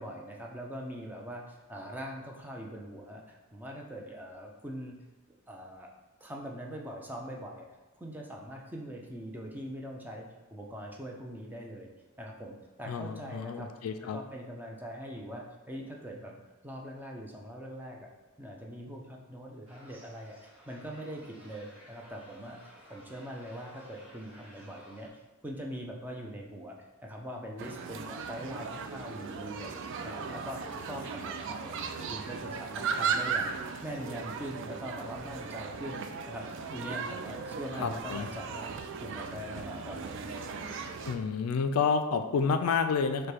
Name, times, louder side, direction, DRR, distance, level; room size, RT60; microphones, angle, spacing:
voice 1, 0.0-4.9 5.5-5.9 6.2-7.7 8.0-11.9 12.2-13.7 14.1-16.4 16.6-18.1 18.4-26.8 27.0-31.8 32.0-38.7 39.0-40.3, equal, 10° right, -1 dB, 0.5 m, -42 dB
voice 2, 12.9-14.2 37.8-38.3 41.0-43.3, left 5 dB, 80° left, 8 dB, 0.3 m, -29 dB
sound 1, 19.7-25.1, equal, 25° right, 1.3 m, -55 dB
sound 2, 27.6-41.2, right 5 dB, 60° right, 0.4 m, -37 dB
4.9 x 2.2 x 4.3 m, 1.1 s
head